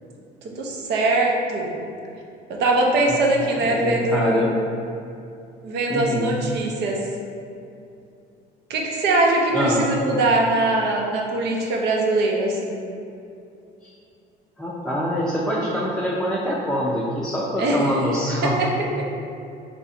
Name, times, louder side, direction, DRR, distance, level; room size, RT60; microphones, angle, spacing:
voice 1, 0.5-1.7 2.5-4.5 5.6-7.0 8.7-12.8 17.6-18.0 18.4-18.7 19.0-19.2, right 2 dB, 70° right, 0 dB, 0.7 m, -22 dB
voice 2, 3.5-4.5 5.9-6.3 9.5-9.9 13.8-13.9 14.6-18.6, equal, 5° left, -6 dB, 0.5 m, -24 dB
3.3 x 2.6 x 4.1 m, 2.6 s
supercardioid pair, 95°, 18 cm